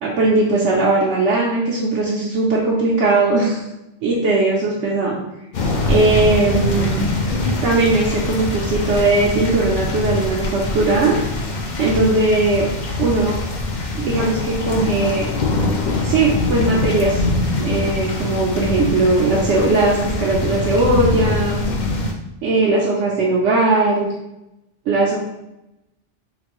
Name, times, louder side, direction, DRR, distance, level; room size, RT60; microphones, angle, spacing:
voice 1, 0.0-3.6 4.0-5.2 5.9-7.1 7.6-11.2 11.8-12.6 13.0-13.3 14.0-15.3 16.0-17.2 17.6-21.6 22.4-24.1 24.9-25.2, right 2 dB, 85° right, -5 dB, 1.0 m, -18 dB
sound 1, 5.5-22.1, left 2 dB, 55° left, 0.5 m, -23 dB
4.0 x 2.6 x 2.9 m, 0.92 s
omnidirectional pair, 1.2 m